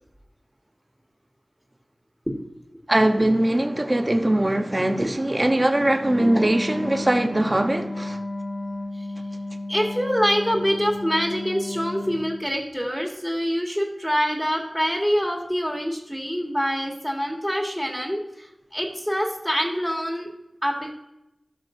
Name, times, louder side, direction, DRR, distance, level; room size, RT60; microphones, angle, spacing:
voice 1, 2.9-8.2, right 1 dB, 30° right, 0.8 m, -21 dB
Wind instrument woodwind instrument, 6.0-12.5, left 2 dB, 60° left, 2.3 m, -33 dB
voice 2, 9.7-20.3 20.6-20.9, equal, 5° left, 1.6 m, -25 dB
13.0 x 6.1 x 2.6 m
wide cardioid pair, 60°, 0 cm